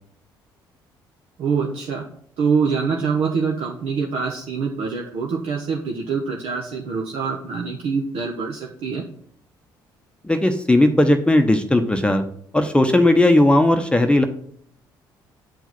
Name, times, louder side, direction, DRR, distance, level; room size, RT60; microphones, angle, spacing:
voice 1, 1.4-2.1 2.4-9.0, right 5 dB, 60° right, -1 dB, 1.0 m, -25 dB
voice 2, 10.2-12.2 12.5-14.3, left 1 dB, 10° left, 6 dB, 0.9 m, -16 dB
8.1 x 4.6 x 5.9 m, 0.63 s
hypercardioid pair, 50°, 11 cm